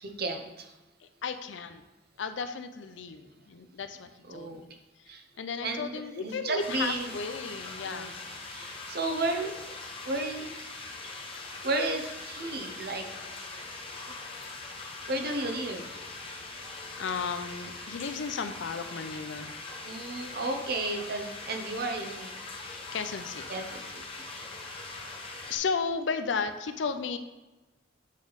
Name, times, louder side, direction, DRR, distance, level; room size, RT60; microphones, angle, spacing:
voice 1, 0.0-0.7 4.3-4.6 5.1-5.2 5.6-7.1 7.8-8.1 8.5-9.7 10.0-10.5 11.6-13.0 15.1-15.9 19.8-22.3 23.5-24.0, right 2 dB, 55° right, 4 dB, 0.8 m, -33 dB
voice 2, 1.0-1.8 2.2-4.7 5.1-8.1 11.3-11.5 13.9-15.0 16.3-16.4 17.0-19.6 22.6-23.6 25.5-27.2, left 5 dB, 75° left, 9 dB, 0.5 m, -35 dB
sound 1, 6.6-25.6, left 3 dB, 30° left, 0.9 m, -42 dB
8.2 x 3.4 x 4.0 m, 1.1 s
head